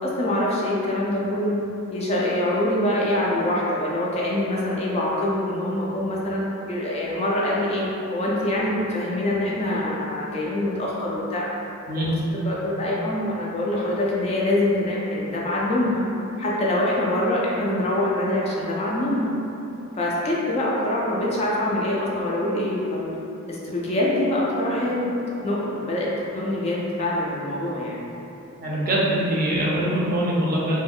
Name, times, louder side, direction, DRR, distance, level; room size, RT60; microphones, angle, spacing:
voice 1, 0.0-1.6 1.9-7.9 8.1-11.5 12.4-16.0 16.4-19.3 20.0-23.1 23.5-25.1 25.4-26.1 26.3-28.0, left 1 dB, 30° left, -5 dB, 0.4 m, -24 dB
voice 2, 28.6-30.8, right 1 dB, 45° right, -5 dB, 0.5 m, -23 dB
2.4 x 2.2 x 3.4 m, 2.9 s
head